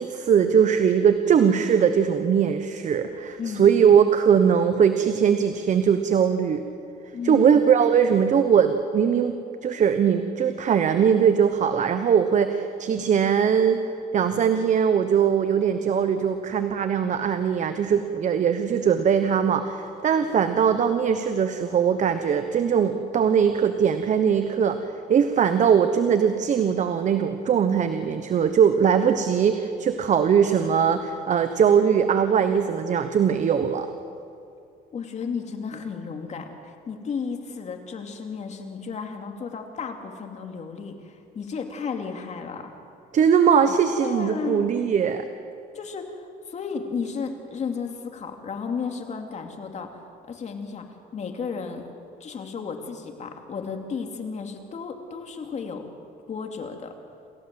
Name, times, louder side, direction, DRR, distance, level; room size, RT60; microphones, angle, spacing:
voice 1, 0.0-6.6 7.2-9.4 9.6-13.8 14.1-24.8 25.1-33.9 43.1-45.2, right 7 dB, 45° right, 9 dB, 1.1 m, -21 dB
voice 2, 3.4-3.7 7.1-7.5 34.9-42.7 44.0-44.7 45.7-50.0 50.3-50.8 51.1-51.9 52.2-55.9 56.3-56.9, left 5 dB, 40° left, 4 dB, 2.7 m, -33 dB
28.0 x 15.0 x 7.8 m, 2.6 s
cardioid pair, 110°, 17 cm